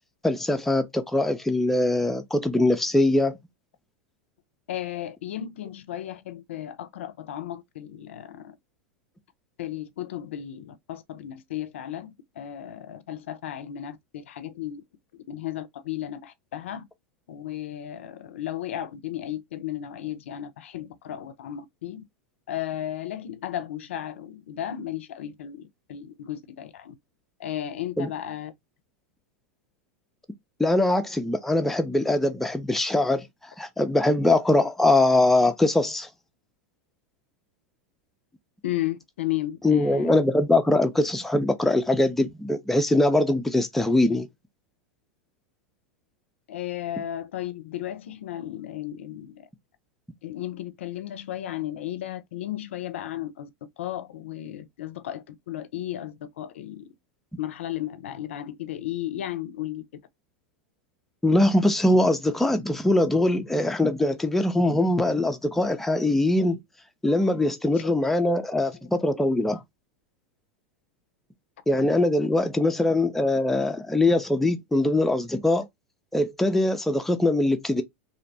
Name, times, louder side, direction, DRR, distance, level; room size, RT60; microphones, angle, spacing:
voice 1, 0.2-3.4 28.0-28.1 30.6-33.3 33.6-36.1 39.6-44.3 61.2-66.6 67.0-69.6 71.7-75.7 76.1-77.8, left 2 dB, 5° left, 0.4 m, -22 dB
voice 2, 4.7-8.6 9.6-14.8 15.1-16.8 17.3-22.0 22.5-27.0 27.4-28.5 38.6-40.1 46.5-49.5 50.2-53.5 53.8-56.9 57.4-59.8 67.8-67.9 72.0-72.1, left 12 dB, 85° left, 0.4 m, -34 dB
2.6 x 2.0 x 2.6 m
hypercardioid pair, 110°, 7 cm